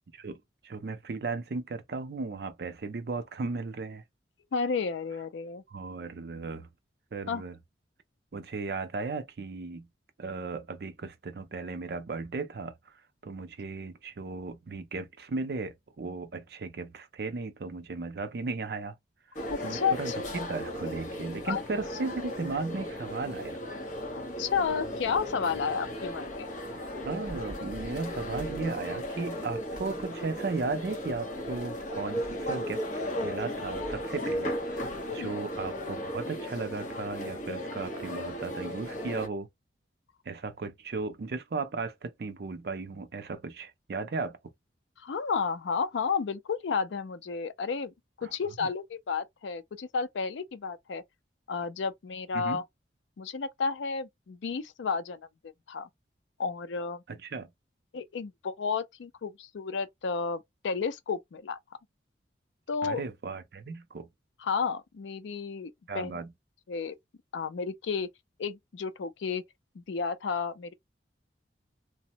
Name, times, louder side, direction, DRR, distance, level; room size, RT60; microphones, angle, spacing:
voice 1, 0.1-4.0 5.7-6.7 7.1-7.6 8.3-9.9 10.2-12.7 13.2-18.9 19.6-23.6 27.0-32.8 33.2-39.5 40.3-44.4 48.2-48.3 52.3-52.6 57.1-57.5 62.8-64.1 65.9-66.3, right 3 dB, 55° right, 0.4 m, -36 dB
voice 2, 4.5-5.6 7.3-7.4 19.5-20.2 21.5-21.6 24.1-26.5 35.1-35.3 45.0-51.0 51.5-52.6 53.2-55.2 55.7-55.9 56.4-57.0 57.9-61.6 62.7-63.0 64.4-66.2 66.7-67.0 67.3-68.1 68.4-69.4 69.8-70.7, left 5 dB, 85° left, 0.4 m, -32 dB
sound 1, 19.3-39.3, equal, 45° left, 0.9 m, -36 dB
2.9 x 2.0 x 2.8 m
head